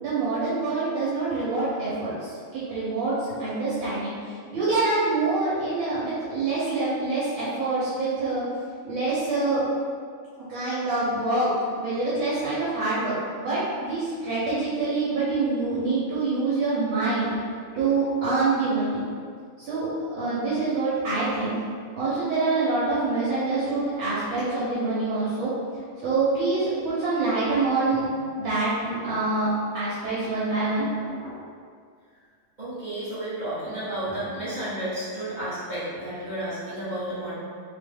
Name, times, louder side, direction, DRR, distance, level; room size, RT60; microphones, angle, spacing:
voice 1, 0.0-3.1 3.4-4.1 4.5-8.4 8.8-9.6 10.5-11.5 11.7-17.3 17.7-19.0 19.6-21.5 22.0-25.5 26.0-28.0 28.4-30.9, right 3 dB, 70° right, -10 dB, 1.6 m, -26 dB
voice 2, 31.0-31.4 32.6-37.3, right 1 dB, 40° right, -12 dB, 0.7 m, -32 dB
3.6 x 3.1 x 3.4 m, 2.1 s
omnidirectional pair, 2.3 m